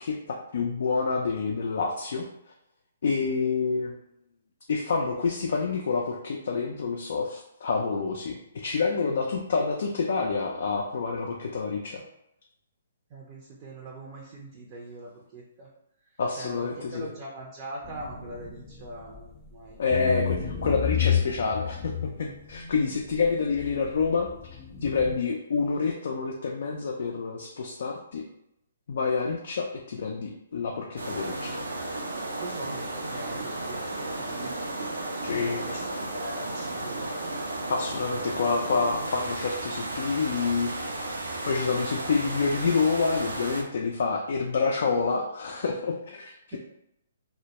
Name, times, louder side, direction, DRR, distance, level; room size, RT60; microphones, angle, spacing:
voice 1, 0.0-2.3 3.0-3.9 4.7-12.0 16.2-17.1 19.8-24.3 24.8-28.2 28.9-31.6 35.2-35.8 37.6-40.7 41.5-46.6, left 4 dB, 65° left, 0 dB, 0.3 m, -28 dB
voice 2, 13.1-15.7 16.4-19.8 32.4-34.6 35.4-37.1 46.5-46.6, right 1 dB, 35° right, -3 dB, 0.5 m, -42 dB
sound 1, 17.8-19.5 19.9-25.2, left 9 dB, 15° left, 0.5 m, -31 dB
sound 2, 31.0-43.6, right 2 dB, 85° right, 0.5 m, -34 dB
2.1 x 2.1 x 2.8 m, 0.81 s
hypercardioid pair, 135°, 0 cm